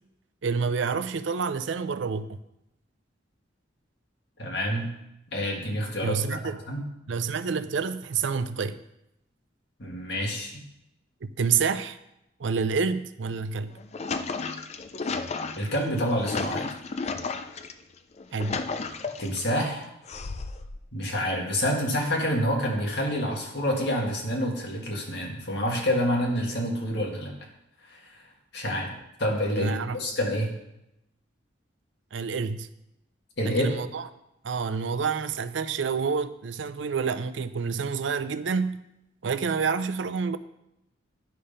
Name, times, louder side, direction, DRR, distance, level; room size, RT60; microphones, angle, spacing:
voice 1, 0.4-2.4 6.0-6.6 7.1-8.8 11.2-12.0 12.4-13.8 18.3-18.6 29.6-30.0 32.1-32.7 33.4-34.1 34.4-38.8 39.2-40.4, right 5 dB, 75° right, 12 dB, 0.5 m, -28 dB
voice 2, 4.4-5.0 5.3-6.8 9.8-10.5 15.6-16.7 19.2-19.9 20.9-27.3 27.9-28.0 28.5-28.9 29.2-30.5 33.4-33.7, equal, 60° left, 0 dB, 2.0 m, -28 dB
sound 1, 13.6-17.7 18.2-19.4 20.1-20.8, left 4 dB, 35° left, 0.4 m, -33 dB
10.0 x 5.3 x 5.5 m, 0.85 s
head